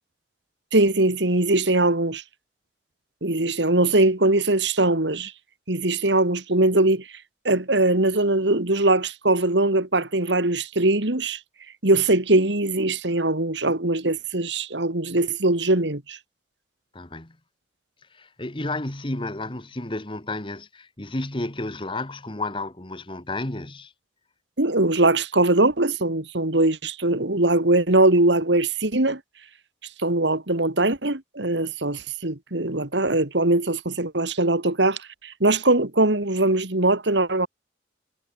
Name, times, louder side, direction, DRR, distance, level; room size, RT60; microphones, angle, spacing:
voice 1, 0.7-2.2 3.2-5.3 5.7-7.0 7.4-11.4 11.8-16.2 24.6-29.2 30.0-37.5, right 2 dB, 75° right, 2.5 m, -21 dB
voice 2, 16.9-17.3 18.1-23.9, left 2 dB, 25° left, 1.6 m, -32 dB
head